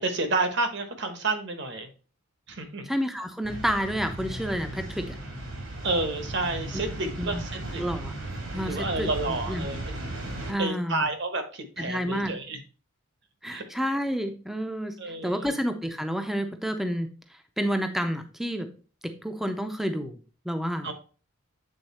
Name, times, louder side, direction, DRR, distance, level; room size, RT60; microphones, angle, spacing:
voice 1, 0.0-1.9 2.5-2.9 5.8-7.8 8.6-9.8 10.6-12.6 13.5-13.6 15.0-15.5 20.8-20.9, right 2 dB, 55° right, 7 dB, 1.1 m, -30 dB
voice 2, 2.8-5.2 6.7-6.9 7.2-7.4 7.7-8.1 8.5-9.7 10.5-11.1 11.8-12.4 13.4-14.9 15.2-17.1 17.6-18.7 19.0-20.2 20.4-20.9, equal, ahead, 7 dB, 0.6 m, -30 dB
sound 1, 3.4-10.5, right 1 dB, 75° right, 2.4 m, -36 dB
8.1 x 3.9 x 4.1 m, 0.37 s
head